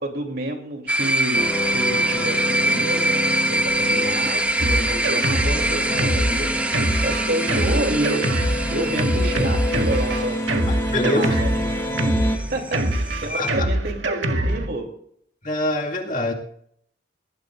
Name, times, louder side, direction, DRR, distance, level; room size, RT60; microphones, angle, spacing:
voice 1, 0.0-1.4 1.7-6.5 7.0-8.3 8.7-10.4 11.0-11.6 12.2-12.8 13.2-14.9, right 1 dB, 55° right, 2 dB, 3.2 m, -29 dB
sound 1, 0.9-13.5, right 1 dB, 10° right, 1.3 m, -25 dB
sound 2, 1.3-12.4, left 1 dB, 15° left, 2.0 m, -28 dB
Drum kit, 4.6-14.7, right 1 dB, 80° right, 1.8 m, -24 dB
voice 2, 10.7-11.4 13.4-13.7 15.4-16.3, left 1 dB, 45° left, 0 dB, 2.2 m, -25 dB
19.5 x 18.5 x 2.6 m, 0.67 s
head